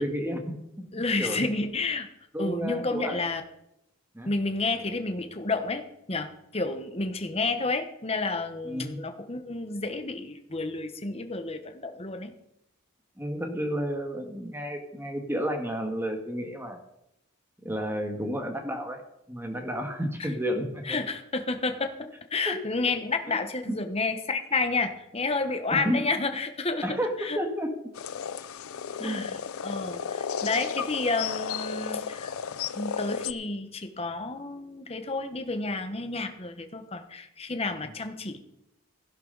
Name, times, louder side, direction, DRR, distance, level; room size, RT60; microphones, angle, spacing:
voice 1, 0.0-0.8 1.2-1.5 2.3-3.2 4.1-4.3 8.6-9.0 13.2-16.8 17.6-19.0 19.3-21.0 22.4-22.6 23.3-23.4 23.7-23.8 25.7-26.1 26.8-27.9 29.0-29.3, equal, 10° right, 4 dB, 1.8 m, -31 dB
voice 2, 0.9-2.1 2.4-3.4 4.3-12.3 20.2-20.3 20.8-26.8 27.2-27.4 29.0-29.4 29.6-32.3 32.7-38.4, left 3 dB, 30° left, 7 dB, 1.2 m, -30 dB
sound 1, 27.9-33.3, left 7 dB, 90° left, 0.6 m, -33 dB
16.0 x 11.5 x 4.1 m, 0.84 s
head